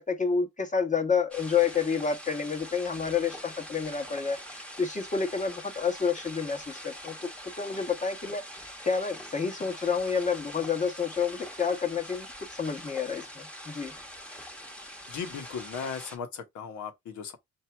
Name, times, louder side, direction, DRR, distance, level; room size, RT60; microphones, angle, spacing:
voice 1, 0.0-7.2 7.6-8.4 8.8-13.9, left 6 dB, 25° left, 1.2 m, -29 dB
sound 1, 1.3-16.2, equal, 5° left, 1.1 m, -44 dB
voice 2, 15.1-17.4, left 6 dB, 70° left, 1.2 m, -37 dB
4.6 x 2.7 x 3.4 m
cardioid pair, 90°, 30 cm